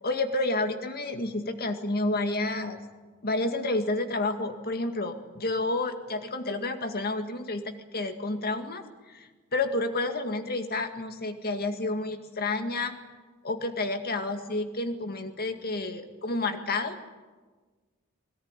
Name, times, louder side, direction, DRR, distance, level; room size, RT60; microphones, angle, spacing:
voice 1, 0.0-2.8 3.2-12.9 13.4-17.0, left 2 dB, 45° left, 7 dB, 2.0 m, -30 dB
22.0 x 18.0 x 9.8 m, 1.3 s
head